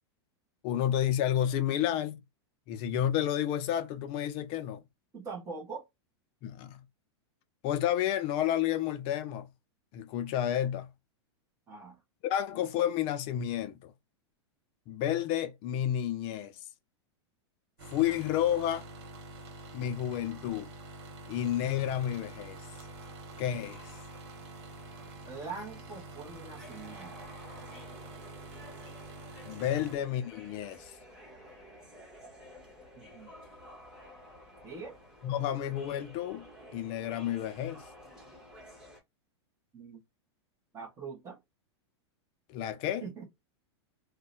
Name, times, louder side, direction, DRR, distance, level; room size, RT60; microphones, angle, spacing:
voice 1, 0.6-2.2 2.7-4.8 6.4-6.8 7.6-9.5 9.9-10.9 12.2-13.9 14.9-16.5 17.9-18.9 19.7-20.7 21.3-22.6 23.4-23.8 29.5-30.9 35.2-36.5 36.7-37.8 42.5-43.0, left 11 dB, 40° left, 0.4 m, -30 dB
voice 2, 5.1-5.8 11.7-12.0 25.2-27.1 29.8-29.9 32.9-33.3 34.6-35.0 39.7-40.0 40.7-41.4 43.0-43.2, right 5 dB, 20° right, 1.0 m, -43 dB
sound 1, 17.8-30.0, right 2 dB, 65° right, 1.2 m, -47 dB
sound 2, 21.8-39.0, left 1 dB, 5° right, 1.3 m, -53 dB
2.6 x 2.2 x 3.8 m
supercardioid pair, 140°, 15 cm